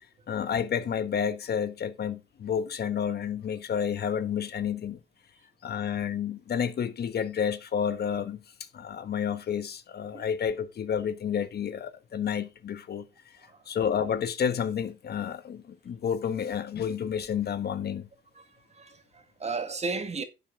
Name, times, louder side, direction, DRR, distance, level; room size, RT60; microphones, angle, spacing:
voice 1, 0.3-5.0 5.6-8.4 8.7-13.1 13.7-18.1, left 8 dB, 55° left, 1.3 m, -30 dB
voice 2, 18.4-20.2, right 4 dB, 35° right, 1.9 m, -35 dB
11.5 x 7.5 x 3.7 m
cardioid pair, 90°, 20 cm